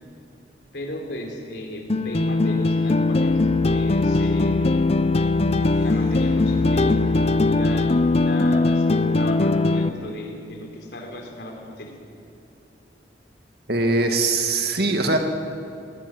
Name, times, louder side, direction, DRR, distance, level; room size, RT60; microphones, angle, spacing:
voice 1, 0.7-4.8 5.8-7.0 7.5-11.9, left 1 dB, 65° left, 2 dB, 4.3 m, -36 dB
sound 1, 1.9-9.9, left 3 dB, 35° left, 0.7 m, -20 dB
sound 2, 3.0-8.0, equal, 15° right, 4.7 m, -33 dB
voice 2, 13.7-15.2, right 2 dB, 60° right, 4 dB, 2.1 m, -21 dB
21.0 x 19.0 x 9.4 m, 2.6 s
head